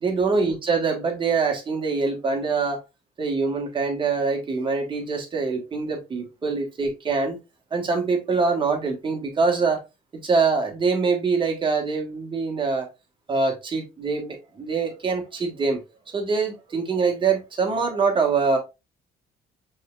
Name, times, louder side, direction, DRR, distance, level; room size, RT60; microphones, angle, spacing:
voice 1, 0.0-2.8 3.2-7.4 7.7-9.8 10.2-12.9 13.3-15.8 16.1-18.6, right 4 dB, 30° right, 2 dB, 1.5 m, -24 dB
5.4 x 3.4 x 2.4 m, 0.25 s
cardioid pair, 110°, 17 cm